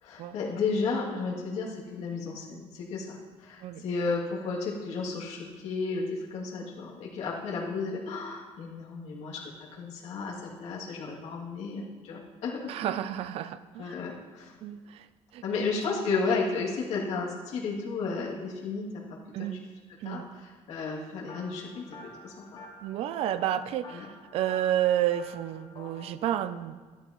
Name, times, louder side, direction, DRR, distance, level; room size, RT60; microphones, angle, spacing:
voice 1, 0.0-12.7 13.8-14.5 15.4-18.9 19.4-19.6 20.0-21.9 22.2-22.6 23.9-24.1, left 4 dB, 60° left, -5 dB, 2.6 m, -33 dB
voice 2, 12.7-13.9 14.6-15.1 15.3-15.4 19.3-19.6 20.0-20.3 22.8-26.9, right 11 dB, 55° right, 13 dB, 0.4 m, -30 dB
sound 1, 21.3-26.1, left 2 dB, 35° left, 1.4 m, -49 dB
12.0 x 11.0 x 3.0 m, 1.4 s
cardioid pair, 170°, 12 cm